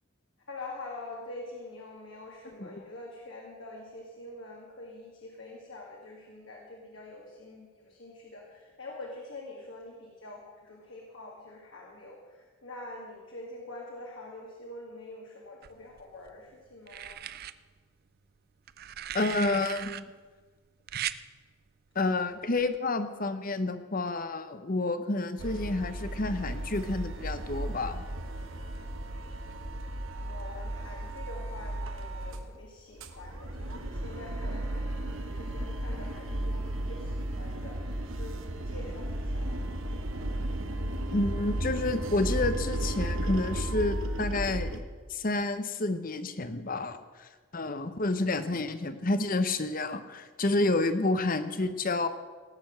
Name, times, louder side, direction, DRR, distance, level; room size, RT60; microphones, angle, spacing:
voice 1, 0.5-17.3 30.1-39.7, left 2 dB, 65° left, -2 dB, 2.2 m, -45 dB
sound 1, 15.6-16.3 16.9-17.5 18.7-20.0 20.9-21.2 22.6-22.8, right 12 dB, 45° right, 0.4 m, -38 dB
voice 2, 19.1-20.0 21.9-28.0 41.1-44.8 45.1-52.1, left 2 dB, 40° left, 11 dB, 0.9 m, -29 dB
sound 2, 25.4-32.5 32.8-44.8, right 1 dB, 65° right, 1.2 m, -34 dB
17.5 x 7.0 x 7.7 m, 1.4 s
head